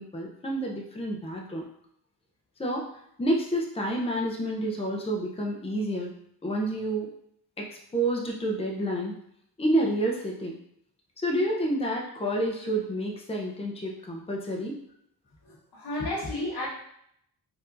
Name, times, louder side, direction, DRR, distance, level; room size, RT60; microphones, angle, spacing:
voice 1, 0.0-1.6 2.6-2.9 3.2-6.1 6.4-7.1 7.6-9.1 9.6-10.5 11.2-14.8, right 1 dB, 15° left, -1 dB, 0.7 m, -29 dB
voice 2, 15.4-16.7, left 1 dB, 75° left, -6 dB, 1.5 m, -32 dB
4.3 x 2.8 x 2.6 m, 0.71 s
cardioid pair, 55°, 40 cm